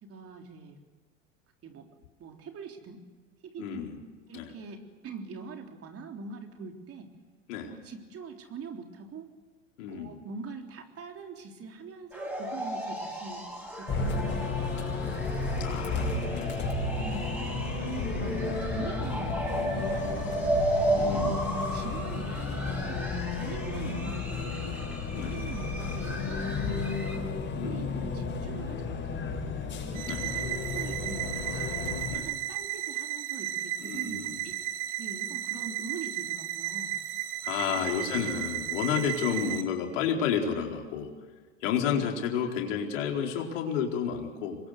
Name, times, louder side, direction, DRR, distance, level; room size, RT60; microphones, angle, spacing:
voice 1, 0.1-0.8 1.6-1.9 2.2-3.0 3.4-3.9 4.3-7.1 7.7-9.3 9.9-13.5 13.8-15.1 15.9-16.3 17.0-17.5 17.8-20.6 21.3-24.8 25.2-27.3 27.6-29.4 29.9-31.7 32.3-34.6 35.0-36.9 37.7-38.3 41.9-42.1, right 4 dB, 35° right, 3 dB, 3.8 m, -43 dB
voice 2, 3.6-4.0 4.3-4.5 7.5-7.7 9.8-10.2 15.6-16.6 20.9-21.4 25.1-25.3 27.5-28.1 30.1-30.2 32.1-32.3 33.8-34.4 37.4-41.1 41.6-44.6, left 7 dB, 70° left, 2 dB, 4.4 m, -31 dB
sound 1, 12.1-27.2, right 1 dB, 5° right, 7.7 m, -34 dB
Bus, 13.9-32.1, left 4 dB, 30° left, 7.1 m, -33 dB
sound 2, 30.0-39.6, right 12 dB, 50° right, 2.8 m, -34 dB
26.5 x 22.0 x 8.0 m, 1.3 s
hypercardioid pair, 85°, 39 cm